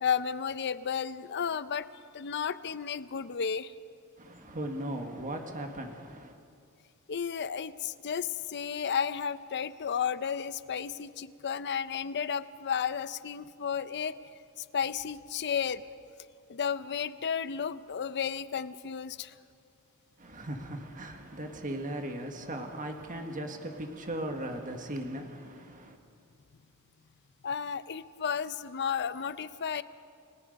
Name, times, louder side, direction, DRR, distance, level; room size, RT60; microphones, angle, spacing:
voice 1, 0.0-1.9 2.1-3.7 7.1-14.2 14.6-15.8 16.5-19.4 27.4-29.8, left 7 dB, 50° left, 15 dB, 0.6 m, -33 dB
voice 2, 4.2-6.3 20.2-26.0, right 1 dB, 35° right, 4 dB, 1.6 m, -38 dB
29.5 x 18.0 x 5.3 m, 2.3 s
head